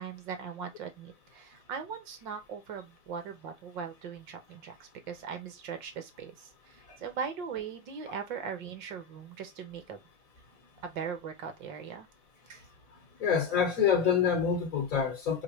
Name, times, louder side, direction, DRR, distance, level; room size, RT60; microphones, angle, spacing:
voice 1, 0.0-10.0 10.8-12.1 12.5-12.7, right 6 dB, 35° right, 0.9 m, -40 dB
voice 2, 13.2-15.4, left 7 dB, 25° left, 1.4 m, -26 dB
4.8 x 2.2 x 3.1 m
hypercardioid pair, 155°, 40 cm